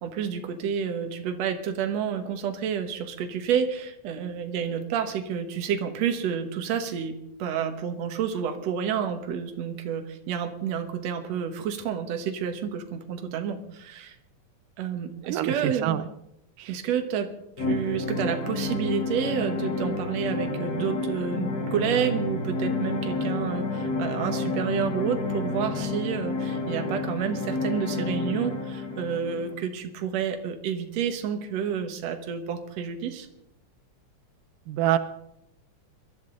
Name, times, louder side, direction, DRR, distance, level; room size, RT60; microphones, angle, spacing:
voice 1, 0.0-14.2 14.8-16.0 16.7-17.3 17.6-33.3, right 8 dB, 60° right, 6 dB, 2.3 m, -29 dB
voice 2, 15.3-16.1 16.6-16.7 34.7-35.0, right 12 dB, 90° right, 13 dB, 2.3 m, -26 dB
sound 1, 17.6-29.5, left 3 dB, 55° left, 1.0 m, -30 dB
22.0 x 12.5 x 3.9 m, 0.81 s
omnidirectional pair, 3.6 m